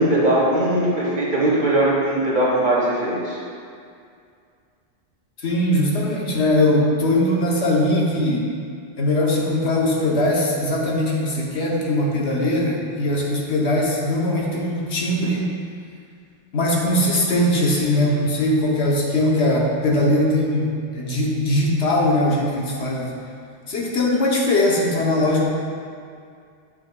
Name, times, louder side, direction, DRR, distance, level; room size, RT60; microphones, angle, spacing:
voice 1, 0.0-3.4, right 1 dB, 45° right, -5 dB, 1.4 m, -20 dB
voice 2, 5.4-8.5 9.0-15.5 16.5-23.1 23.7-25.5, left 1 dB, 75° left, -3 dB, 1.2 m, -20 dB
8.5 x 5.8 x 2.3 m, 2.3 s
omnidirectional pair, 1.1 m